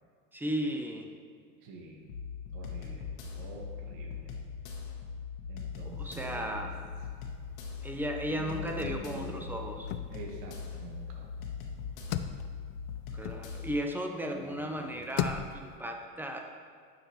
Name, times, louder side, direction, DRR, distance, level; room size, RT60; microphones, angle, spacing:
voice 1, 0.3-1.1 5.8-6.8 7.8-9.9 13.1-16.4, equal, 5° right, 3 dB, 0.3 m, -35 dB
voice 2, 1.6-2.1 2.5-3.1 3.3-4.4 5.5-6.7 8.3-9.7 10.1-11.3 14.2-15.0, right 3 dB, 60° right, 0 dB, 1.4 m, -46 dB
sound 1, 2.1-13.8, left 6 dB, 85° left, 1.3 m, -41 dB
sound 2, 5.8-7.0 7.3-7.4 7.7-14.1 14.6-15.8, left 10 dB, 55° left, 0.5 m, -39 dB
9.9 x 5.9 x 3.1 m, 2.1 s
supercardioid pair, 130°, 40 cm